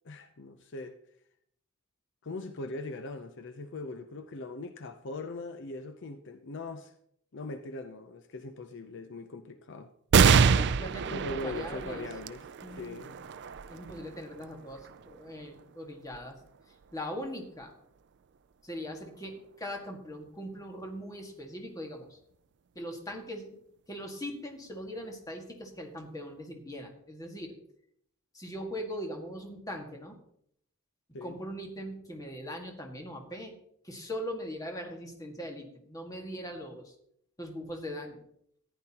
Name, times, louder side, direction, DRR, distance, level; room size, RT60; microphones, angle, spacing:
voice 1, 0.0-1.0 2.2-6.9 7.3-9.9 11.1-12.5 12.8-13.2 31.1-31.4, left 2 dB, 60° left, 0.6 m, -40 dB
sound 1, 10.1-17.0 17.6-17.7 18.8-19.4, right 6 dB, 55° right, 0.4 m, -28 dB
voice 2, 10.3-12.1 12.6-13.1 13.7-16.4 16.9-17.7 18.6-22.2 22.8-23.6 23.9-27.5 28.3-30.2 31.2-33.6 33.8-37.0 37.4-38.2, equal, 15° left, 1.8 m, -40 dB
14.5 x 10.5 x 2.9 m
head